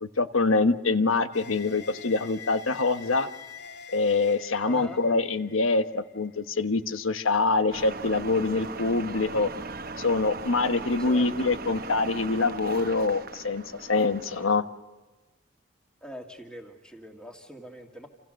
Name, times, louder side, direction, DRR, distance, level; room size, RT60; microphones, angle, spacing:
voice 1, 0.0-3.3 3.9-9.5 10.0-14.6, left 3 dB, 85° left, 10 dB, 1.3 m, -25 dB
sound 1, 1.3-6.7, left 7 dB, 55° left, 2.1 m, -46 dB
voice 2, 4.6-5.0 11.0-11.5 16.0-18.1, equal, 5° left, 2 dB, 2.1 m, -43 dB
sound 2, 7.7-14.5, right 3 dB, 45° right, 1.0 m, -38 dB
29.0 x 28.0 x 6.5 m, 1.2 s
head